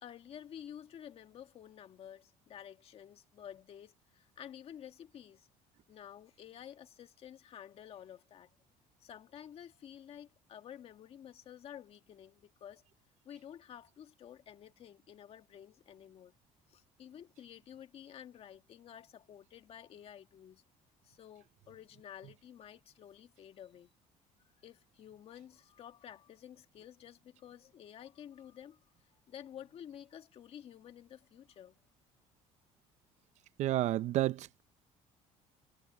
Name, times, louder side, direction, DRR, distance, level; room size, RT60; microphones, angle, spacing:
voice 1, 0.0-5.5 5.9-8.5 9.0-12.8 13.2-16.3 16.7-20.6 21.0-23.9 24.6-28.8 29.3-31.8, left 9 dB, 45° left, 1.8 m, -51 dB
voice 2, 33.6-34.6, right 14 dB, 60° right, 0.6 m, -30 dB
cardioid pair, 145°, 14 cm